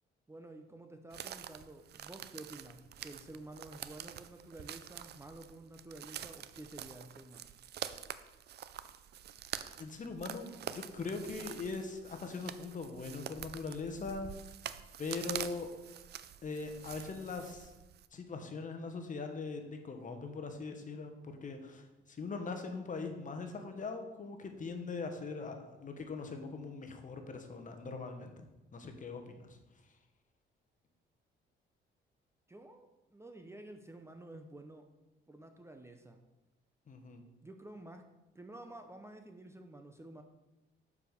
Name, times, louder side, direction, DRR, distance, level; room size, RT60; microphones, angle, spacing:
voice 1, 0.3-7.5 32.5-34.9 35.3-36.2 37.4-38.1 38.3-40.2, right 2 dB, 15° right, 5 dB, 0.6 m, -51 dB
sound 1, 1.1-18.1, right 10 dB, 55° right, 0.4 m, -46 dB
voice 2, 9.8-14.5 15.0-15.7 16.4-17.7 18.1-29.9 36.9-37.2, left 4 dB, 40° left, 5 dB, 1.1 m, -41 dB
6.9 x 4.8 x 5.2 m, 1.0 s
cardioid pair, 90°, 20 cm